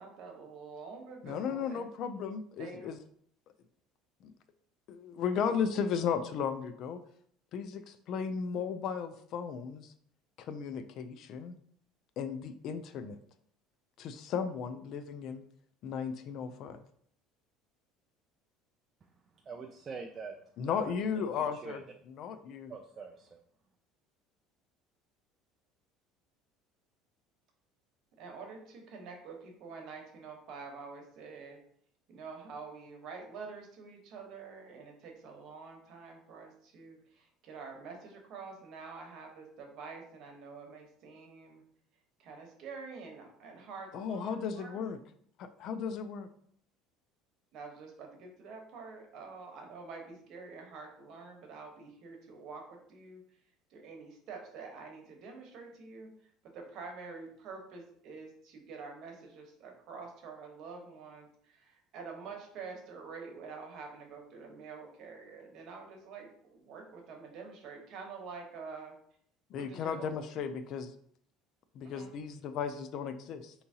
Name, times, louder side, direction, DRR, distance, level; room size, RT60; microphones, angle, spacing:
voice 1, 0.0-1.8 2.6-2.9 28.2-31.6 32.1-41.6 42.2-44.8 47.5-53.2 53.7-68.9 69.5-70.3 71.8-72.1, right 4 dB, 55° right, 3 dB, 1.0 m, -47 dB
voice 2, 1.2-3.0 4.2-4.3 4.9-7.0 7.5-9.9 10.4-11.6 12.2-13.2 14.0-15.4 15.8-16.8 20.6-21.8 22.1-22.7 43.9-45.0 45.4-46.3 69.5-70.9 71.7-73.5, left 6 dB, 50° left, 10 dB, 0.3 m, -35 dB
voice 3, 19.5-20.3 20.7-21.2 21.6-21.8 22.7-23.3, right 5 dB, 25° right, 3 dB, 0.3 m, -44 dB
4.5 x 2.8 x 2.7 m, 0.64 s
cardioid pair, 135°, 0 cm